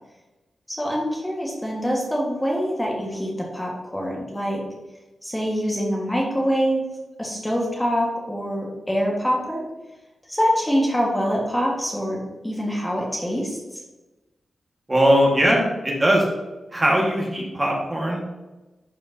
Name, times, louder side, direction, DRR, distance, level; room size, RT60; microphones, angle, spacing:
voice 1, 0.7-4.6 5.2-6.8 7.2-9.6 10.3-13.8, equal, 10° left, -2 dB, 1.4 m, -25 dB
voice 2, 14.9-16.3 16.7-18.2, equal, 20° right, -1 dB, 1.5 m, -20 dB
11.0 x 4.9 x 2.7 m, 1.1 s
wide cardioid pair, 115°, 0 cm